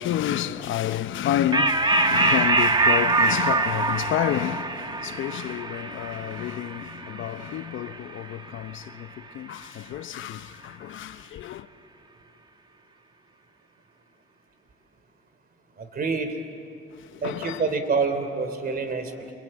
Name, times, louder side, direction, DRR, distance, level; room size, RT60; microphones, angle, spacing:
voice 1, 0.0-11.7 17.0-17.6, left 11 dB, 75° left, 0.9 m, -30 dB
sound 1, 1.5-8.4, right 3 dB, 25° right, 1.3 m, -24 dB
voice 2, 15.8-16.3 17.2-19.3, right 4 dB, 50° right, 3.1 m, -27 dB
29.0 x 23.5 x 8.7 m
cardioid pair, 90°, 20 cm